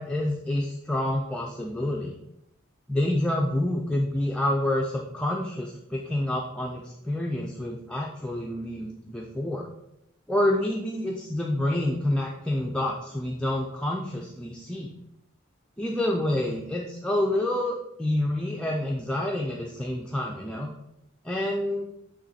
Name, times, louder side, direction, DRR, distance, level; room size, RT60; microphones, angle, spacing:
voice 1, 0.0-2.2 2.9-9.7 10.3-14.9 15.8-20.7 21.2-21.9, left 1 dB, 5° left, -1 dB, 0.4 m, -28 dB
8.7 x 3.1 x 4.1 m, 0.86 s
head